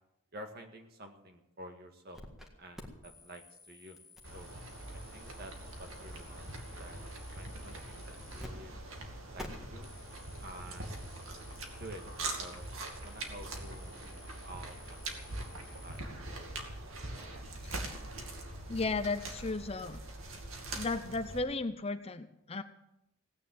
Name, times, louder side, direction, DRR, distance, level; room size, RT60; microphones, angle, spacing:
voice 1, 0.3-2.2 2.6-4.0 4.3-4.5 5.1-8.7 9.3-9.9 10.4-11.1 11.8-12.0 12.4-12.7 13.0-15.0 15.3-16.0, right 1 dB, 45° right, 5 dB, 1.9 m, -50 dB
sound 1, 2.1-2.5 2.7-8.5 8.7-8.9 9.4-16.0, left 1 dB, ahead, 1.8 m, -53 dB
sound 2, 4.2-21.4, right 2 dB, 70° right, 2.5 m, -43 dB
voice 2, 18.7-20.0 20.7-22.6, left 3 dB, 25° left, 10 dB, 0.6 m, -35 dB
17.0 x 9.7 x 7.7 m, 0.85 s
head